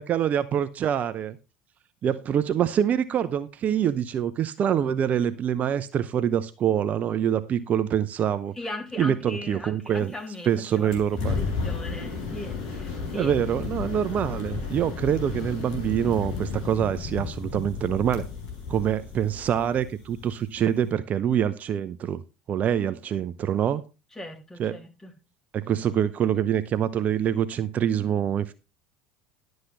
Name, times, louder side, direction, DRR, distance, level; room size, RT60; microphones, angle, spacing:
voice 1, 0.0-1.4 2.0-8.5 9.0-10.1 10.5-11.5 13.1-18.3 18.7-22.2 22.5-23.8 24.6-24.8 25.5-28.5, right 9 dB, 40° right, 0.7 m, -25 dB
voice 2, 8.6-11.0 11.3-13.3 24.1-25.1, left 2 dB, 10° left, 3.1 m, -38 dB
sound 1, 10.9-20.9, left 5 dB, 70° left, 4.6 m, -33 dB
11.5 x 8.0 x 3.9 m
hypercardioid pair, 80°, 4 cm